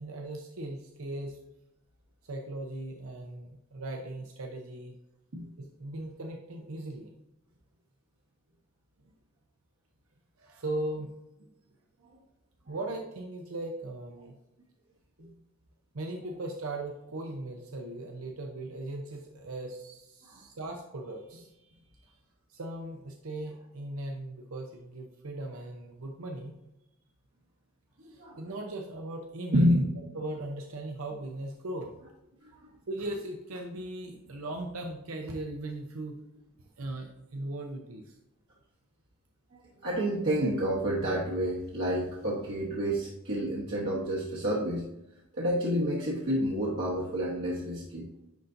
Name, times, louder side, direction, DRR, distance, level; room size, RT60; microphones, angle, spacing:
voice 1, 0.0-1.4 2.2-4.9 5.6-7.1 10.4-11.1 11.4-11.5 12.7-14.3 15.9-22.2 22.5-26.5 28.0-29.7 30.1-31.9 32.9-36.1 36.8-38.2, right 2 dB, 85° right, 2 dB, 0.8 m, -38 dB
voice 2, 28.0-28.4 29.5-29.9 32.5-32.7 39.5-44.8 45.3-48.1, equal, 65° right, -5 dB, 1.2 m, -29 dB
10.0 x 3.9 x 2.7 m, 0.91 s
head